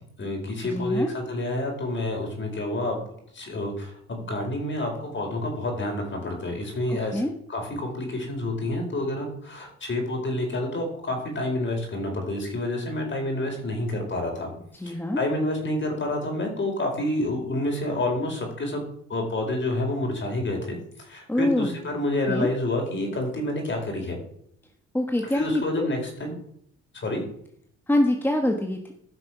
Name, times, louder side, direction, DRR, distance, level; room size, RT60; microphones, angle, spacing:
voice 1, 0.2-3.0 3.3-7.2 7.5-14.5 14.9-18.8 19.1-24.2 25.3-26.4 26.9-27.2, left 1 dB, 40° left, 2 dB, 4.7 m, -28 dB
voice 2, 0.7-1.1 6.9-7.3 14.7-15.2 21.3-21.8 22.3-22.5 24.9-25.9 27.9-28.9, left 1 dB, 5° left, 3 dB, 1.3 m, -25 dB
15.0 x 6.1 x 6.0 m, 0.70 s
cardioid pair, 90°, 30 cm